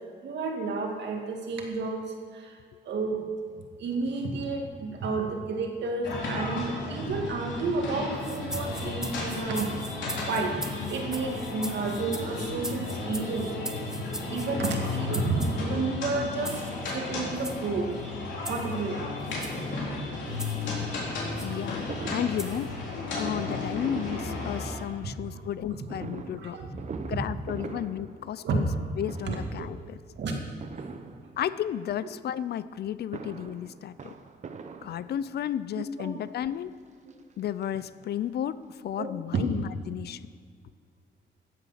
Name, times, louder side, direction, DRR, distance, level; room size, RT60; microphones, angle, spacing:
voice 1, 0.2-2.6 2.9-3.3 3.8-9.7 10.3-10.6 10.9-13.5 14.3-17.9 18.5-19.0 25.0-25.4 25.7-25.8 26.4-27.0 28.4-28.6 29.3-29.7 30.2-30.4 31.0-31.2 35.7-36.1 37.1-37.2 39.0-39.4, right 3 dB, 70° right, 2 dB, 2.0 m, -31 dB
sound 1, 6.0-24.7, left 3 dB, 85° left, 3.6 m, -34 dB
sound 2, 8.2-15.6 16.4-16.7 17.3-17.6 18.4-18.7 19.3-19.6 20.4-20.7 21.4-21.6 22.4-22.7, right 1 dB, 5° right, 0.8 m, -40 dB
voice 2, 21.4-22.7 23.2-26.6 27.1-28.7 29.0-30.0 31.4-34.1 34.8-36.7 37.4-40.3, left 10 dB, 60° left, 16 dB, 0.4 m, -33 dB
Fireworks, 21.9-25.1 25.9-28.8 29.0-29.7 30.6-31.7 32.8-35.5 36.3-36.4 36.7-36.8 37.1-38.3 38.7-38.8 38.9-39.0, right 5 dB, 40° right, 0.8 m, -43 dB
15.0 x 8.2 x 5.7 m, 2.1 s
cardioid pair, 135°, 19 cm